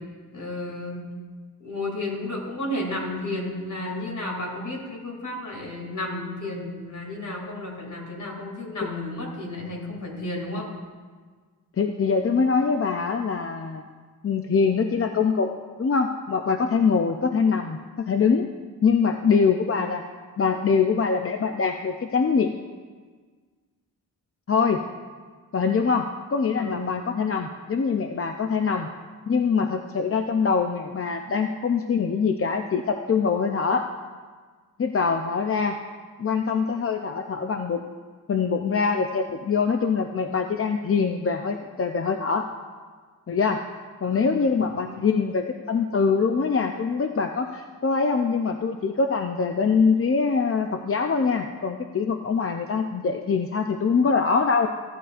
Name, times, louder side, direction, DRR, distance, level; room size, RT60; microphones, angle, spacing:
voice 1, 0.3-1.0 1.6-10.7 26.6-26.9 44.0-44.2 44.6-45.0, left 1 dB, 55° left, -1 dB, 2.7 m, -32 dB
voice 2, 11.8-13.8 14.2-18.5 18.8-20.0 20.4-22.5 24.5-24.8 25.5-28.9 29.3-33.9 34.8-35.8 36.2-37.8 38.3-42.5 43.3-43.7 44.0-54.7, left 5 dB, 40° left, 5 dB, 0.5 m, -23 dB
15.5 x 11.0 x 2.5 m, 1.5 s
wide cardioid pair, 125°, 36 cm